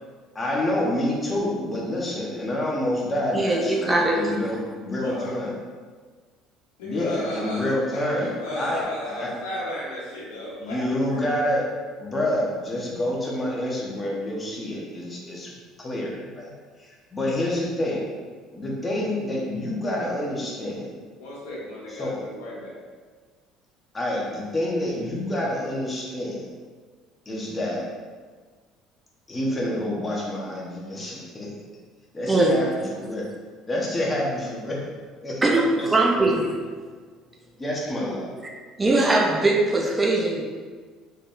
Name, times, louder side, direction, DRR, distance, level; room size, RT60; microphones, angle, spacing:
voice 1, 0.3-5.5 6.8-9.3 10.6-11.6 12.0-16.5 16.8-18.1 18.5-20.9 21.9-22.1 23.9-26.5 27.2-27.9 29.3-31.5 32.1-33.2 33.7-34.9 35.2-36.3 37.6-38.3, left 1 dB, 25° left, -3 dB, 1.1 m, -28 dB
voice 2, 3.3-4.3 32.3-32.5 35.4-36.5 38.8-40.4, right 2 dB, 20° right, -1 dB, 0.5 m, -21 dB
voice 3, 5.0-5.3 6.8-11.2 21.2-22.8, left 1 dB, 90° left, -5 dB, 0.9 m, -34 dB
4.0 x 3.4 x 2.6 m, 1.5 s
supercardioid pair, 90°, 0 cm